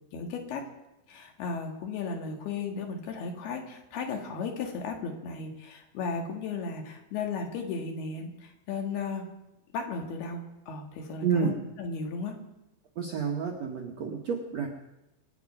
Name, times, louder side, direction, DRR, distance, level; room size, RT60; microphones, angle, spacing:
voice 1, 0.1-0.6 1.1-9.3 9.7-12.4, left 4 dB, 70° left, 3 dB, 3.7 m, -35 dB
voice 2, 11.2-11.5 13.0-14.7, right 6 dB, 65° right, 1 dB, 1.7 m, -29 dB
25.5 x 9.8 x 5.4 m, 0.94 s
omnidirectional pair, 4.9 m